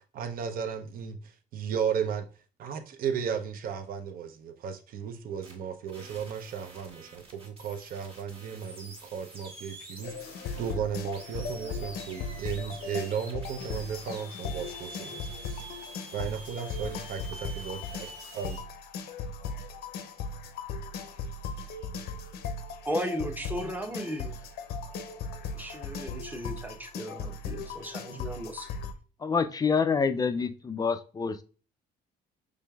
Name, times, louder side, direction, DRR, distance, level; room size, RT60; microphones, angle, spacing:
voice 1, 0.0-2.2 2.6-15.6 16.1-17.8 18.3-18.6, right 7 dB, 60° right, 0.7 m, -35 dB
sound 1, 5.4-5.6 5.9-18.6, right 1 dB, 35° right, 1.5 m, -47 dB
sound 2, 10.0-28.9, left 4 dB, 70° left, 0.6 m, -38 dB
voice 2, 22.8-24.3 25.5-28.7, equal, 10° right, 0.7 m, -35 dB
voice 3, 29.2-31.4, left 5 dB, 20° left, 0.3 m, -27 dB
5.0 x 3.3 x 2.3 m
cardioid pair, 110°, 17 cm